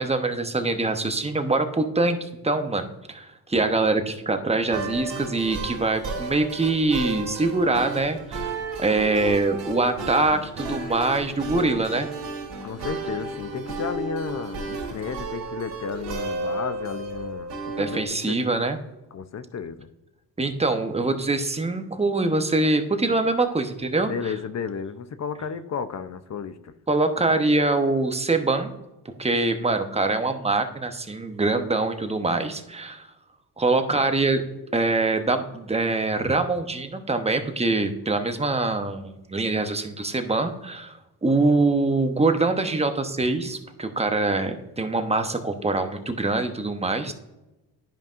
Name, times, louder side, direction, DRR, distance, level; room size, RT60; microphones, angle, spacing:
voice 1, 0.0-8.5 8.8-12.1 17.8-18.8 20.4-24.3 26.9-28.7 29.2-33.1 33.6-34.4 34.7-47.1, right 3 dB, 15° right, 6 dB, 0.9 m, -24 dB
sound 1, 4.7-18.1, right 3 dB, 65° right, 2.1 m, -33 dB
voice 2, 12.6-18.4 19.1-19.9 24.1-26.7 47.1-47.2, left 6 dB, 40° left, 12 dB, 0.5 m, -33 dB
10.0 x 5.3 x 2.5 m, 0.98 s
cardioid pair, 75°, 42 cm